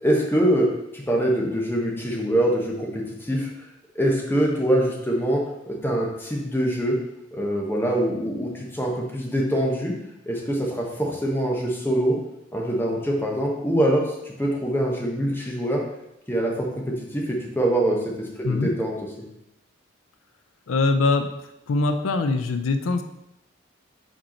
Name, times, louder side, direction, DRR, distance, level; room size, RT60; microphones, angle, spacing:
voice 1, 0.0-0.7 0.9-3.5 3.9-7.0 7.3-10.0 10.3-12.2 12.5-15.8 16.3-19.0, right 1 dB, 10° left, -2 dB, 0.9 m, -24 dB
voice 2, 20.7-21.3 21.7-23.0, left 3 dB, 85° left, 8 dB, 0.5 m, -22 dB
5.1 x 4.4 x 4.2 m, 0.85 s
head